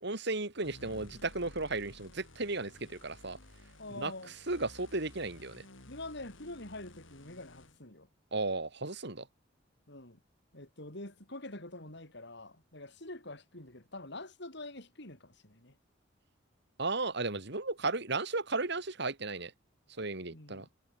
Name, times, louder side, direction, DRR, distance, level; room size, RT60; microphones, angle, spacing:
voice 1, 0.0-3.4 4.0-4.1 4.5-5.6 8.3-9.2 16.8-19.5 20.0-20.7, right 3 dB, 60° right, 3.3 m, -34 dB
sound 1, 0.6-7.8, left 1 dB, 90° left, 5.0 m, -54 dB
voice 2, 3.8-4.3 5.9-8.1 9.9-10.2 10.5-15.7 20.3-20.7, left 2 dB, 60° left, 7.4 m, -46 dB
head